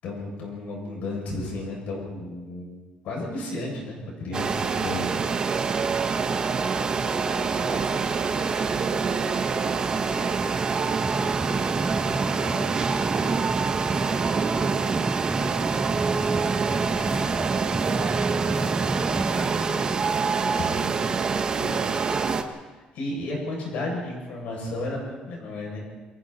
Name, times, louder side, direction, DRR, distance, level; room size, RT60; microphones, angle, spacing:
voice 1, 0.0-2.7 3.0-5.1 20.5-21.0 21.5-21.8 22.7-25.8, left 2 dB, 70° left, -1 dB, 7.4 m, -33 dB
sound 1, 4.3-22.4, right 5 dB, 30° right, 1.5 m, -26 dB
voice 2, 5.0-16.0 16.8-18.3 18.6-19.9, left 1 dB, 35° left, -2 dB, 4.0 m, -43 dB
sound 2, 10.3-21.2, right 2 dB, 10° right, 0.7 m, -32 dB
29.5 x 23.5 x 4.4 m, 1.3 s
cardioid pair, 155°, 3 cm